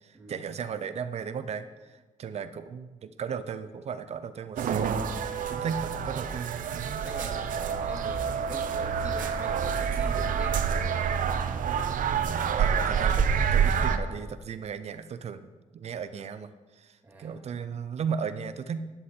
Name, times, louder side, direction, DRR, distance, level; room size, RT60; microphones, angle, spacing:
voice 1, 0.0-5.0 5.5-7.0 8.0-8.1 12.2-15.4 15.7-18.8, right 6 dB, 50° right, 12 dB, 0.5 m, -36 dB
sound 1, 4.6-14.0, right 7 dB, 85° right, 0.7 m, -27 dB
voice 2, 5.4-5.9 7.0-11.0 17.0-17.4, right 2 dB, 10° right, -3 dB, 2.1 m, -42 dB
12.5 x 10.0 x 4.4 m, 1.3 s
wide cardioid pair, 160°, 14 cm